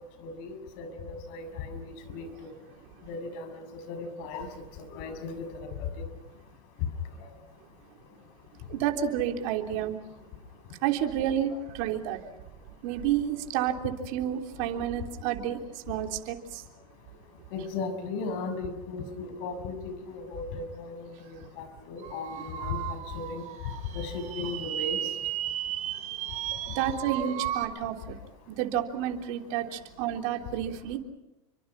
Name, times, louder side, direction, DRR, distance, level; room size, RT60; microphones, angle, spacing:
voice 1, 0.2-2.3 3.1-4.5 4.9-5.4 6.0-6.1 17.5-23.4 23.9-25.0 27.1-27.3, left 4 dB, 60° left, 9 dB, 6.5 m, -36 dB
voice 2, 8.7-10.0 10.8-12.3 12.8-16.6 22.4-22.5 26.7-28.2 28.5-31.0, right 10 dB, 60° right, 4 dB, 3.5 m, -30 dB
sound 1, 22.0-27.6, right 12 dB, 45° right, 4.7 m, -35 dB
29.5 x 25.0 x 5.9 m, 0.93 s
hypercardioid pair, 100°, 18 cm